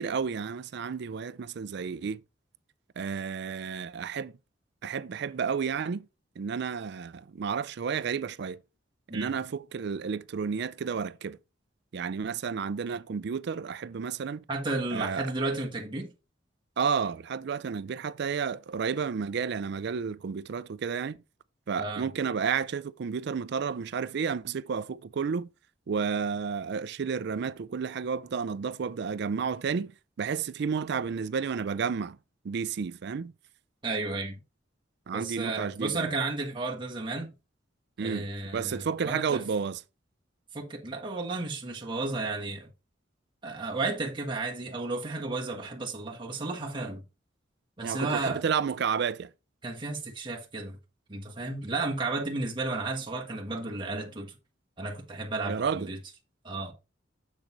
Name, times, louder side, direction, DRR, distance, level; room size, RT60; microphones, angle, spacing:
voice 1, 0.0-2.2 3.0-4.3 4.8-6.0 6.4-8.6 9.1-11.4 11.9-14.4 14.9-15.3 16.8-21.2 21.7-25.5 25.9-29.9 30.2-32.2 32.4-33.3 35.1-36.1 38.0-38.3 38.5-39.8 47.8-49.3 55.5-55.9, right 6 dB, 60° right, 0.4 m, -31 dB
voice 2, 14.5-16.1 21.8-22.1 33.8-34.4 35.1-37.3 38.0-39.4 40.5-42.7 43.4-47.0 47.8-48.4 49.6-50.8 51.1-54.4 54.8-56.0 56.4-56.7, right 3 dB, 25° right, 1.4 m, -33 dB
7.3 x 6.5 x 3.1 m
head